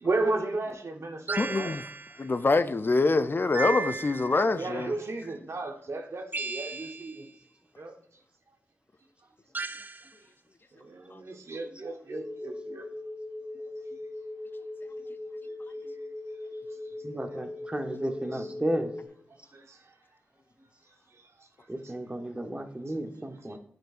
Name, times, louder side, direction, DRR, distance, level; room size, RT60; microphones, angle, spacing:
voice 1, 0.0-1.7 3.6-3.9 4.6-7.3 7.8-7.9 10.8-12.9 19.5-19.8, right 2 dB, 60° right, 0.9 m, -33 dB
sound 1, 1.3-2.2 3.5-4.5 6.3-7.2 9.5-10.1, right 4 dB, 40° right, 0.3 m, -35 dB
voice 2, 1.4-1.9 2.2-4.9 11.1-11.2, left 3 dB, 40° left, 0.4 m, -25 dB
sound 2, 12.1-19.1, left 2 dB, ahead, 1.2 m, -40 dB
voice 3, 17.0-18.9 21.7-23.6, right 1 dB, 20° right, 0.9 m, -33 dB
9.0 x 4.5 x 2.4 m
cardioid pair, 45°, 5 cm